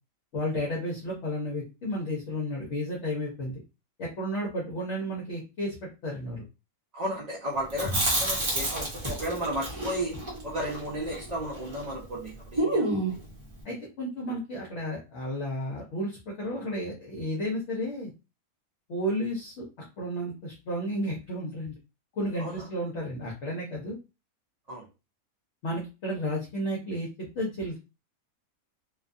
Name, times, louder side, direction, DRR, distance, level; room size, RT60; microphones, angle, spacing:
voice 1, 0.3-3.6 4.0-6.4 13.6-18.1 18.9-19.7 20.0-21.7 22.1-24.0 25.6-27.8, equal, 60° left, -3 dB, 0.9 m, -32 dB
voice 2, 6.9-10.2 10.4-13.2 22.4-22.6 24.7-24.9, equal, 70° right, -4 dB, 0.3 m, -34 dB
Chewing mastication, 7.7-11.9 12.1-12.2 12.6-13.3, right 1 dB, 25° right, 0.8 m, -29 dB
2.6 x 2.3 x 2.5 m, 0.29 s
omnidirectional pair, 1.5 m